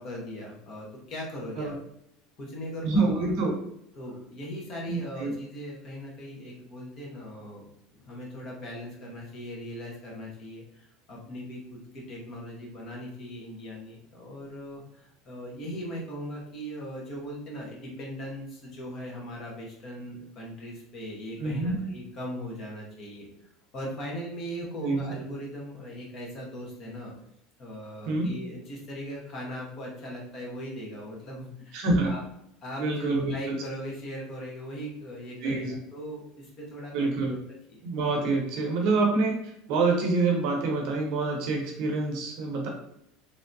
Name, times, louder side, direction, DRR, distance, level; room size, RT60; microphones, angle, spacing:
voice 1, 0.0-1.8 2.4-3.2 3.9-23.3 23.7-27.1 27.6-32.2 32.6-37.4 37.7-37.8, equal, 35° left, -1 dB, 0.9 m, -39 dB
voice 2, 2.8-3.5 4.9-5.3 21.4-21.8 24.8-25.2 28.1-28.3 31.7-32.1 32.8-33.6 35.4-35.8 36.9-37.4 37.8-42.7, right 3 dB, 50° right, 1 dB, 0.8 m, -26 dB
3.3 x 2.6 x 2.6 m, 0.76 s
cardioid pair, 175°, 0 cm